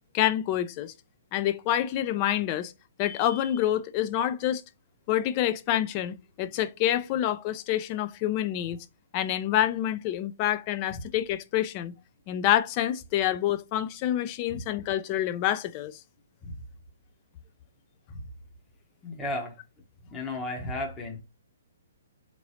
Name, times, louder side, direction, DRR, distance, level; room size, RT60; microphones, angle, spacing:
voice 1, 0.1-0.9 1.3-2.7 3.0-4.6 5.1-8.8 9.1-11.9 12.3-16.0, left 12 dB, 35° left, 0.4 m, -27 dB
voice 2, 19.0-19.5 20.1-21.2, left 2 dB, 15° left, 0.9 m, -34 dB
3.8 x 3.0 x 2.7 m
hypercardioid pair, 135°, 0 cm